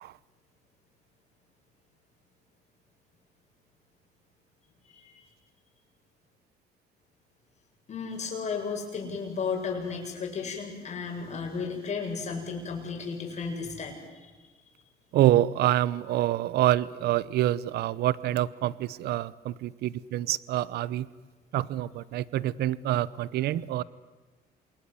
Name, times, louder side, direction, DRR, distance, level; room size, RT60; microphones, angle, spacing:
voice 1, 4.8-5.2 7.9-14.3, left 5 dB, 40° left, 1 dB, 7.7 m, -34 dB
voice 2, 15.1-21.1 21.5-23.8, right 13 dB, 70° right, 21 dB, 0.9 m, -26 dB
27.5 x 20.5 x 9.8 m, 1.3 s
cardioid pair, 110°, 17 cm